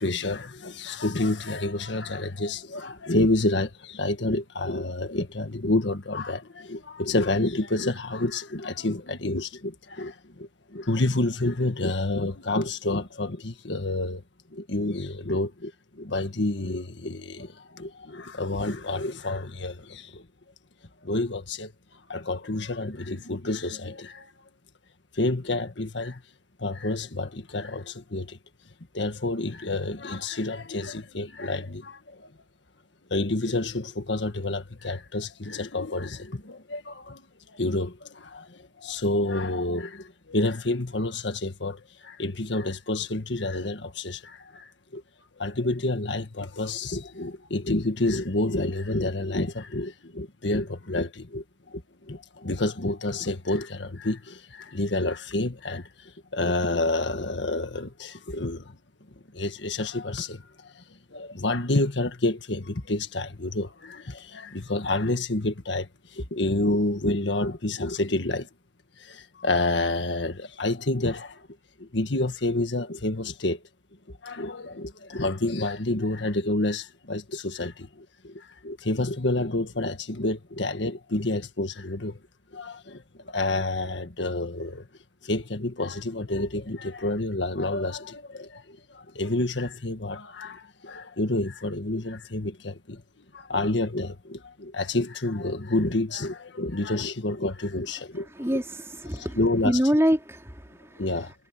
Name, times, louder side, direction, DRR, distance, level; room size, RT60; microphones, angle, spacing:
voice 1, 0.0-14.2 14.5-20.2 21.0-21.7 22.1-24.3 25.1-26.2 26.6-28.4 28.9-32.3 33.1-37.2 37.5-45.0 45.4-58.7 59.3-60.8 61.1-68.5 69.0-71.5 71.8-73.6 74.1-82.2 82.5-84.9 85.2-93.0 93.3-98.5 99.1-99.8 101.0-101.3, left 2 dB, 75° left, 1.7 m, -29 dB
voice 2, 98.2-101.1, equal, 15° right, 3.3 m, -26 dB
head